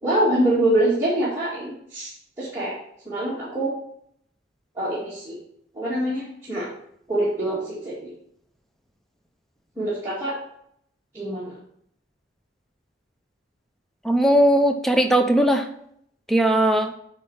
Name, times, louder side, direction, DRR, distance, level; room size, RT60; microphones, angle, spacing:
voice 1, 0.0-2.7 3.1-3.7 4.8-5.4 5.7-6.7 7.1-8.1 9.8-10.3 11.1-11.5, right 1 dB, 15° right, -10 dB, 2.1 m, -24 dB
voice 2, 14.0-15.7 16.3-16.9, right 1 dB, ahead, 5 dB, 0.6 m, -18 dB
8.1 x 4.4 x 5.5 m, 0.70 s
head